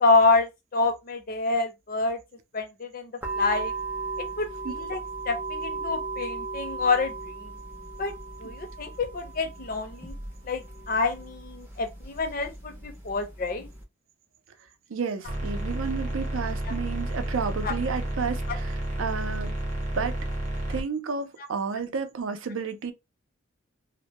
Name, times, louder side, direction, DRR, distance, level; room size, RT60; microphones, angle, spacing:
voice 1, 0.0-2.2 2.5-3.1 3.4-3.7 4.4-5.0 5.3-7.1 7.4-7.5 8.0-8.1 8.4-10.1 10.5-13.7 17.6-17.7 18.5-18.6, left 3 dB, 45° left, 0.5 m, -27 dB
sound 1, 3.2-13.8, right 4 dB, 10° right, 0.4 m, -37 dB
voice 2, 14.9-19.5 20.0-20.2 20.7-22.9, right 5 dB, 80° right, 0.5 m, -31 dB
sound 2, 15.2-20.8, right 1 dB, 35° right, 0.7 m, -31 dB
2.1 x 2.1 x 2.8 m
head